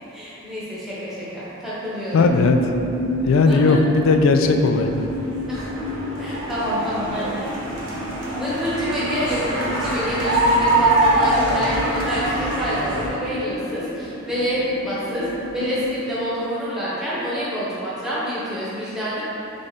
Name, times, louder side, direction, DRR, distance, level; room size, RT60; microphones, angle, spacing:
voice 1, 0.1-2.3 3.4-3.8 5.5-5.7 6.2-7.4 8.3-15.3 15.5-19.2, equal, ahead, -10 dB, 0.9 m, -27 dB
voice 2, 2.1-2.7 3.3-5.1, left 3 dB, 80° left, 6 dB, 0.3 m, -17 dB
sound 1, 2.2-16.0, left 1 dB, 40° left, 1.5 m, -30 dB
sound 2, 4.7-13.1, right 2 dB, 65° right, 0.9 m, -24 dB
3.6 x 3.3 x 4.0 m, 3.0 s
head